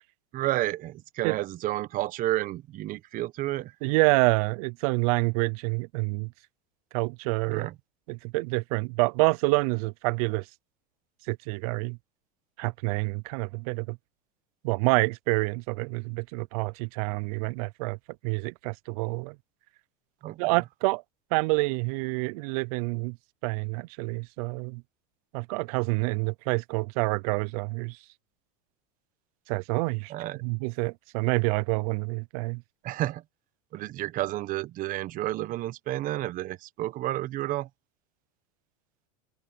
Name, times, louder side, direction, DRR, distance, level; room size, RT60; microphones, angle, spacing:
voice 1, 0.3-3.7 7.5-7.7 20.2-20.4 30.1-30.4 32.8-33.2 33.7-37.7, right 15 dB, 45° right, 1.2 m, -31 dB
voice 2, 3.8-6.3 6.9-7.7 8.1-10.5 11.3-12.0 12.6-14.0 14.6-18.0 18.2-19.4 20.4-21.0 21.3-23.2 23.4-24.8 25.3-28.0 29.5-30.1 30.4-32.6, right 27 dB, 65° right, 0.5 m, -27 dB
open air
supercardioid pair, 125°, 20 cm